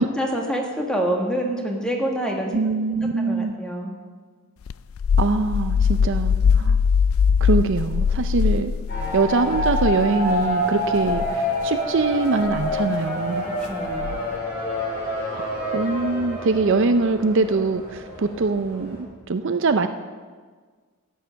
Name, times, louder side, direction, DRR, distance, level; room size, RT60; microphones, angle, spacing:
voice 1, 0.0-2.6 3.2-3.9 13.4-14.3, equal, 5° left, 0 dB, 1.6 m, -27 dB
voice 2, 2.5-3.5 5.2-6.8 7.4-8.7 9.1-13.5 15.3-19.9, right 3 dB, 55° right, 9 dB, 0.5 m, -23 dB
sound 1, 4.7-10.5 11.0-11.3 12.5-12.8 14.0-14.4, left 6 dB, 65° left, 0.3 m, -22 dB
sound 2, 8.9-19.0, left 1 dB, 45° left, 4.7 m, -28 dB
13.5 x 9.2 x 6.3 m, 1.5 s
head